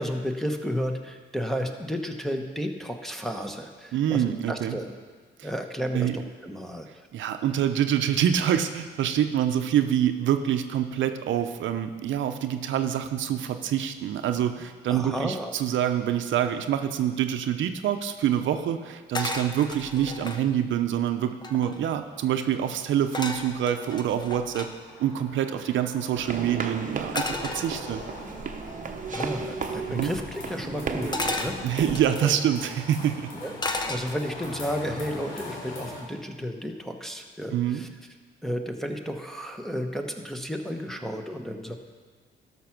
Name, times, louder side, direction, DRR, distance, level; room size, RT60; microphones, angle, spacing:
voice 1, 0.0-4.9 5.4-7.1 14.9-15.5 29.1-31.8 32.2-32.3 33.4-33.5 33.9-37.9 38.4-41.8, equal, ahead, 4 dB, 1.0 m, -32 dB
voice 2, 3.9-4.8 5.4-5.5 5.9-6.2 7.1-24.7 25.0-28.0 29.9-30.1 31.6-33.3 37.5-37.8, right 10 dB, 70° right, 8 dB, 0.7 m, -26 dB
sound 1, 19.1-20.4 21.0-21.1 21.3-21.9 23.1-24.7 27.2-28.2 29.1-29.4 31.1-32.3 33.6-34.4 34.9-35.2, left 2 dB, 20° left, 0.9 m, -33 dB
sound 2, 22.4-36.0, left 2 dB, 90° left, 2.4 m, -43 dB
sound 3, 26.2-32.1, right 5 dB, 40° right, 0.9 m, -35 dB
12.5 x 5.8 x 5.9 m, 1.5 s
cardioid pair, 90°, 20 cm